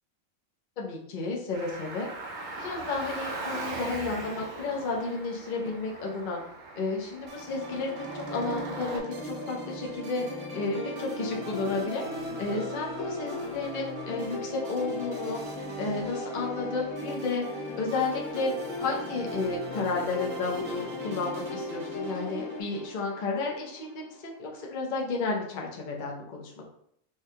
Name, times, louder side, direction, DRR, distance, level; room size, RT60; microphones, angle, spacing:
voice 1, 0.8-2.1 2.6-6.4 6.7-17.5 17.8-26.6, left 3 dB, 45° left, -1 dB, 0.7 m, -32 dB
Car, 1.5-9.0, right 2 dB, 45° right, 0.6 m, -40 dB
sound 1, 7.3-24.6, right 2 dB, 70° right, 1.0 m, -41 dB
sound 2, 8.5-22.6, left 3 dB, 80° left, 1.1 m, -39 dB
4.7 x 2.3 x 2.7 m, 0.71 s
omnidirectional pair, 1.4 m